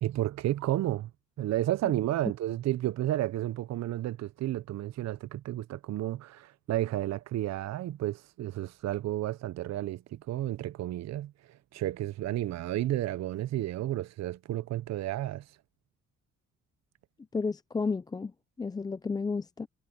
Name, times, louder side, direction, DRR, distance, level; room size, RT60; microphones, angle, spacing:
voice 1, 0.0-1.1 1.4-15.4, right 14 dB, 60° right, 0.6 m, -32 dB
voice 2, 17.3-18.3 18.6-19.7, left 4 dB, 15° left, 0.3 m, -32 dB
cardioid pair, 90°, 30 cm